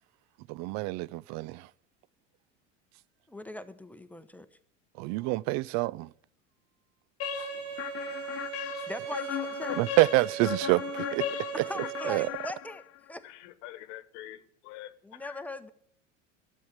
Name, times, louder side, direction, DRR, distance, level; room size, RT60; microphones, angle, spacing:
voice 1, 0.5-1.6 5.0-6.1 9.8-11.3 12.1-12.3, right 20 dB, 50° right, 0.4 m, -27 dB
voice 2, 3.3-4.5 8.9-9.8 11.5-12.8 13.1-13.3 15.0-15.7, left 1 dB, 5° left, 0.9 m, -40 dB
sound 1, 7.2-13.1, left 16 dB, 40° left, 0.7 m, -37 dB
Bowed string instrument, 7.2-12.3, right 12 dB, 70° right, 1.1 m, -39 dB
voice 3, 13.2-15.5, left 14 dB, 70° left, 1.2 m, -46 dB
12.0 x 7.5 x 8.5 m
hypercardioid pair, 85°, 38 cm